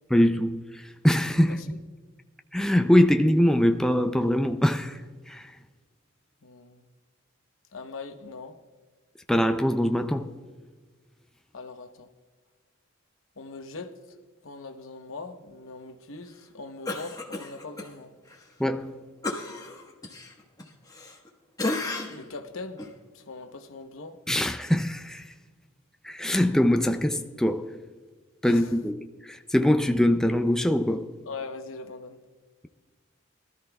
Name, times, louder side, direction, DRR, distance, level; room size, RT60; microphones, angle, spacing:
voice 1, 0.1-1.6 2.5-5.6 9.3-10.3 18.6-19.0 24.3-25.3 26.0-27.7 28.4-31.1, left 1 dB, 5° left, 0.4 m, -23 dB
voice 2, 6.4-6.8 7.7-8.5 11.5-12.1 13.4-13.9 14.4-18.1 22.1-22.8 23.1-24.2 28.4-28.7 31.3-32.2, left 3 dB, 70° left, 0.9 m, -41 dB
Cough, 16.9-17.9 18.3-18.4 19.2-21.3 21.6-22.3 22.8-22.9, left 2 dB, 20° left, 1.3 m, -33 dB
22.0 x 13.0 x 2.3 m
head